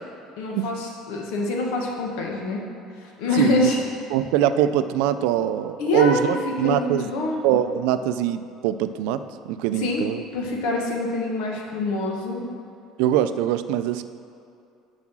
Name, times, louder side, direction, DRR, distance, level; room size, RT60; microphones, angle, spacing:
voice 1, 0.4-2.6 3.0-3.8 5.8-7.5 9.7-10.0 10.3-12.4, left 2 dB, 75° left, -1 dB, 1.4 m, -25 dB
voice 2, 3.4-3.7 4.1-7.1 7.4-10.2 13.0-14.0, right 11 dB, 80° right, 11 dB, 0.4 m, -23 dB
7.3 x 4.9 x 6.1 m, 2.6 s
cardioid pair, 175°, 0 cm